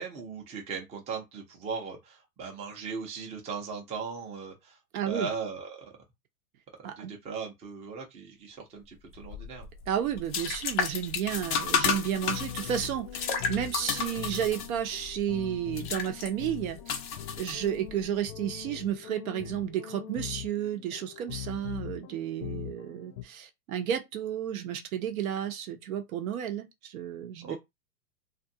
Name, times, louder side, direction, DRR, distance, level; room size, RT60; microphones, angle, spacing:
voice 1, 0.0-4.8 5.0-6.0 6.8-9.7 27.4-27.6, right 5 dB, 15° right, 0.5 m, -38 dB
voice 2, 4.9-5.3 6.8-7.1 9.9-17.0 17.4-27.6, right 10 dB, 55° right, 0.7 m, -32 dB
sound 1, 9.2-18.0, left 6 dB, 35° left, 0.4 m, -33 dB
sound 2, 11.9-23.2, left 11 dB, 70° left, 0.7 m, -42 dB
2.4 x 2.4 x 2.7 m
hypercardioid pair, 120°, 50 cm